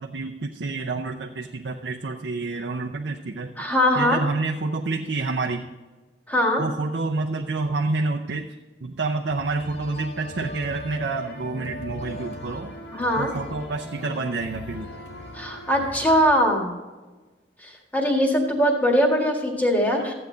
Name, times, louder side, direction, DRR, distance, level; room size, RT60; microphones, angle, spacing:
voice 1, 0.0-3.6 3.9-5.7 6.6-8.6 8.8-12.7 13.2-14.9, right 3 dB, 90° right, 2 dB, 0.7 m, -28 dB
voice 2, 3.6-4.2 6.3-6.6 12.9-13.3 15.3-16.7 17.6-20.1, equal, 10° left, 1 dB, 1.8 m, -21 dB
sound 1, 9.3-16.2, equal, 75° left, 1.9 m, -39 dB
14.0 x 8.7 x 3.9 m, 1.3 s
head